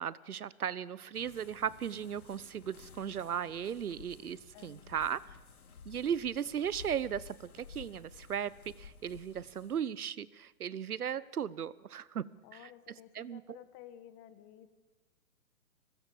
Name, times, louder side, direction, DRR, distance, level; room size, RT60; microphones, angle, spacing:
voice 1, 0.0-5.4 5.8-13.6, right 8 dB, 85° right, 20 dB, 1.1 m, -37 dB
sound 1, 1.1-9.8, left 6 dB, 85° left, 2.6 m, -54 dB
voice 2, 4.5-5.0 12.4-14.7, left 11 dB, 30° left, 11 dB, 1.7 m, -54 dB
23.5 x 20.0 x 7.3 m, 1.2 s
hypercardioid pair, 135°, 43 cm